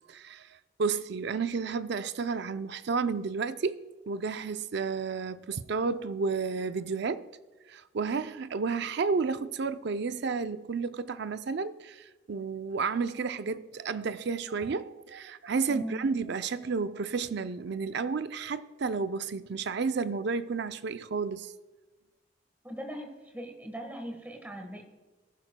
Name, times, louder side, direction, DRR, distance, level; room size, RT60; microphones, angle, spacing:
voice 1, 0.1-0.5 0.8-7.3 7.7-21.5, right 5 dB, 55° right, 0.4 m, -31 dB
voice 2, 15.7-16.0 22.6-24.8, equal, 10° right, 1.3 m, -39 dB
19.5 x 10.5 x 2.2 m
head